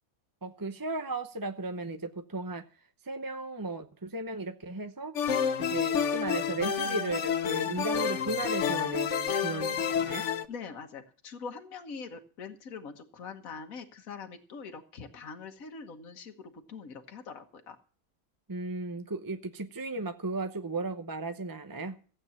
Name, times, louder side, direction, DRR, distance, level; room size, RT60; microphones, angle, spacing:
voice 1, 0.4-2.6 3.0-5.2 5.6-10.3 18.5-22.0, right 2 dB, 20° right, 8 dB, 0.6 m, -35 dB
sound 1, 5.2-10.5, left 8 dB, 65° left, 1.1 m, -29 dB
voice 2, 10.5-17.8, left 5 dB, 80° left, 4 dB, 1.7 m, -43 dB
15.5 x 8.6 x 7.0 m, 0.40 s
omnidirectional pair, 1.4 m